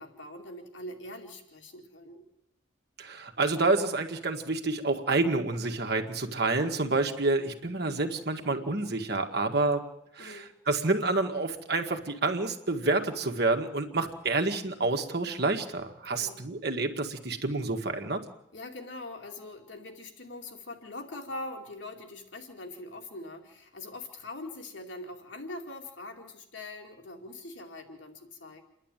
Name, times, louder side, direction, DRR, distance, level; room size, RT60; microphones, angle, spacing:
voice 1, 0.0-2.2 10.2-10.5 16.1-16.4 18.5-28.6, left 2 dB, 80° left, 3 dB, 2.5 m, -42 dB
voice 2, 3.0-9.8 10.2-18.2, right 3 dB, 60° right, 4 dB, 1.8 m, -28 dB
28.0 x 11.0 x 9.1 m, 0.85 s
head